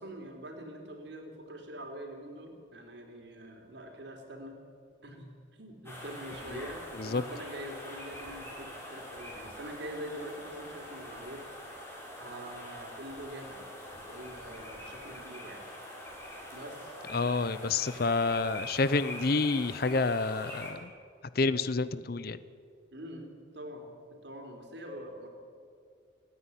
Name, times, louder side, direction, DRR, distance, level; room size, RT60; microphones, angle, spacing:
voice 1, 0.0-4.6 5.0-11.4 12.2-13.6 13.9-15.6 16.5-16.9 22.9-23.9 24.2-25.3, equal, 60° right, 3 dB, 3.7 m, -44 dB
sound 1, 5.8-20.7, left 1 dB, 10° left, 4.9 m, -44 dB
voice 2, 17.1-20.9 21.3-22.4, left 3 dB, 50° left, 15 dB, 0.6 m, -29 dB
29.5 x 10.0 x 9.8 m, 2.3 s
head